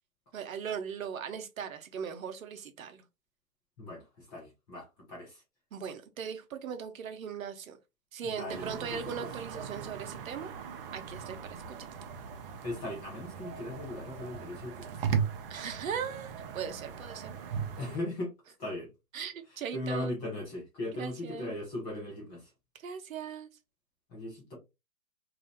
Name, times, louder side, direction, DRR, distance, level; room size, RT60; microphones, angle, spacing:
voice 1, 0.3-3.0 5.7-7.8 8.1-10.5 10.9-11.8 15.5-17.4 19.1-20.1 20.9-21.6 22.8-23.5, right 7 dB, 70° right, 0.7 m, -39 dB
voice 2, 4.3-5.4 8.4-9.0 12.6-15.1 17.8-18.3 18.6-18.9 19.7-22.4 24.1-24.5, left 1 dB, 10° left, 0.4 m, -38 dB
sound 1, 8.5-18.0, right 7 dB, 45° right, 0.5 m, -38 dB
2.7 x 2.1 x 3.1 m
hypercardioid pair, 135°, 42 cm